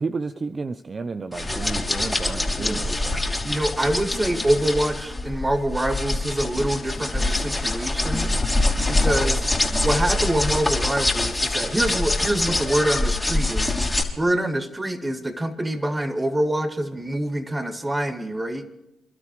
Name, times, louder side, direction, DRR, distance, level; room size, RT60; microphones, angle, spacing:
voice 1, 0.0-3.2, right 4 dB, 40° right, 11 dB, 0.6 m, -32 dB
sound 1, 1.3-14.0, left 2 dB, 15° left, 3.0 m, -24 dB
voice 2, 2.6-3.0 3.4-8.3 8.9-9.5 9.8-13.7 14.2-18.6, right 1 dB, 20° right, 7 dB, 1.9 m, -25 dB
28.5 x 12.5 x 3.1 m, 0.88 s
supercardioid pair, 55°, 0 cm